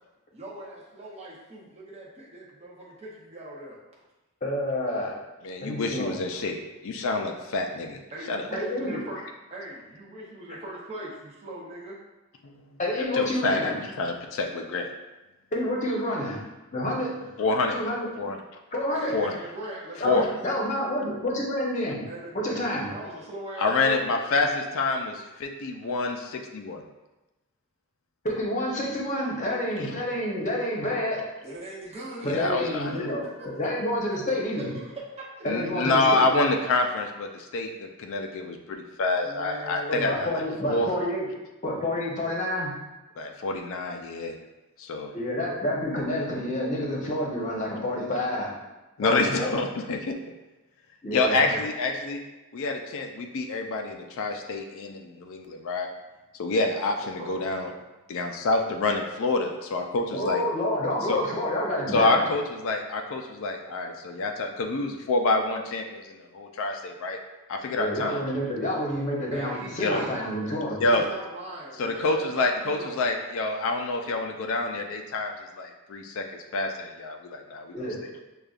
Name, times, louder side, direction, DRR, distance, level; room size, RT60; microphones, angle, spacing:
voice 1, 0.3-3.8 8.1-12.0 18.9-20.3 22.1-22.6 22.9-24.1 31.4-32.5 33.4-33.5 34.8-34.9 39.2-40.1 56.9-57.5 58.5-59.3 69.3-70.2 70.8-73.0, right 1 dB, 30° right, -5 dB, 0.6 m, -40 dB
voice 2, 4.4-5.1 5.6-6.1 8.5-9.0 12.8-13.8 15.5-16.4 16.7-17.3 17.7-18.1 18.7-19.1 20.0-22.0 22.3-22.9 28.2-31.2 32.2-33.2 33.6-34.7 35.4-36.3 39.9-41.3 41.6-42.7 45.1-48.5 49.0-49.6 51.0-51.6 60.1-62.3 67.7-70.8 77.7-78.0, left 1 dB, 35° left, -3 dB, 0.8 m, -28 dB
voice 3, 5.4-6.6 6.8-8.0 8.3-8.5 12.4-12.5 13.1-14.9 17.4-17.8 18.2-18.4 19.1-19.4 20.0-20.3 23.6-26.8 29.8-29.9 32.3-33.0 35.5-40.3 40.7-40.9 43.2-44.3 44.8-45.1 49.0-50.2 51.1-52.2 52.5-55.9 56.4-57.7 58.1-60.4 61.1-61.2 61.9-67.2 67.5-68.2 69.8-70.0 70.8-71.1 71.8-76.2 76.5-77.7, left 3 dB, 60° left, 3 dB, 0.4 m, -27 dB
6.5 x 2.3 x 2.4 m, 1.1 s
head